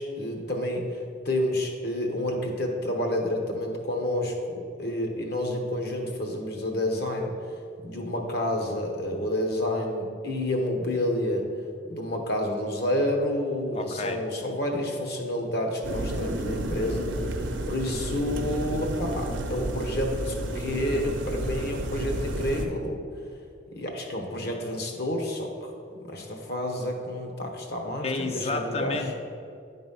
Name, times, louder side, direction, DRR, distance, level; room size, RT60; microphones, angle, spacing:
voice 1, 0.0-7.3 7.8-11.4 11.9-23.0 23.8-25.7 26.0-29.0, left 1 dB, 55° left, 2 dB, 1.0 m, -29 dB
voice 2, 13.7-14.2 28.0-29.1, left 3 dB, 30° left, 7 dB, 0.5 m, -31 dB
sound 1, 15.8-22.7, right 1 dB, 80° right, 0.7 m, -31 dB
9.9 x 4.0 x 5.4 m, 2.4 s
head